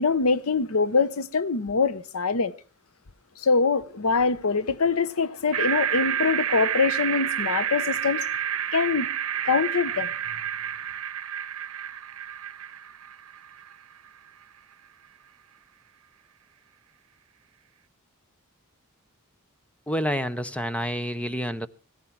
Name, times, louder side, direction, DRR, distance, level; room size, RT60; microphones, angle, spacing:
voice 1, 0.0-2.5 3.4-8.3 8.7-9.1 9.4-10.1, left 4 dB, 80° left, 0.8 m, -24 dB
sound 1, 5.5-13.7, right 9 dB, 85° right, 0.8 m, -29 dB
voice 2, 19.9-21.7, equal, 5° left, 0.7 m, -28 dB
17.5 x 14.0 x 4.5 m
head